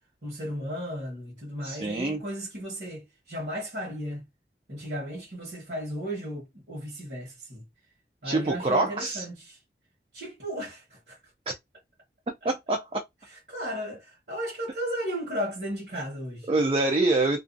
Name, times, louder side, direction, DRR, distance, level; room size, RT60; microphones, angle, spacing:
voice 1, 0.2-4.2 4.7-7.6 8.2-9.6 10.1-11.2 12.4-12.5 13.3-16.5, equal, 60° right, 1.2 m, -35 dB
voice 2, 1.6-2.2 8.2-9.2 11.5-11.6 12.4-13.0 15.9-16.0 16.5-17.4, right 2 dB, 30° right, 0.4 m, -25 dB
2.5 x 2.3 x 2.5 m
head